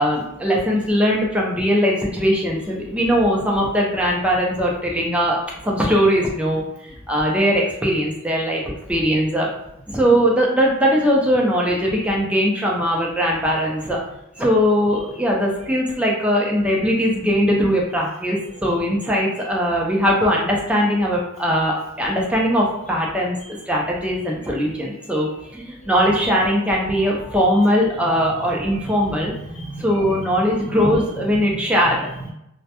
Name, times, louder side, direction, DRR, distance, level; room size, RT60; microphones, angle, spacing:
voice 1, 0.0-5.4 5.6-8.6 8.9-9.5 9.9-14.0 14.4-23.3 23.7-25.3 25.5-29.3 29.8-32.1, equal, 5° right, -3 dB, 0.4 m, -20 dB
voice 2, 19.3-19.8 23.4-23.6 24.9-25.4 26.9-27.3 28.3-28.4 28.7-28.8 29.3-30.2 30.6-30.7 31.5-32.3, right 2 dB, 35° left, -5 dB, 0.7 m, -38 dB
2.1 x 2.1 x 2.8 m, 0.82 s
head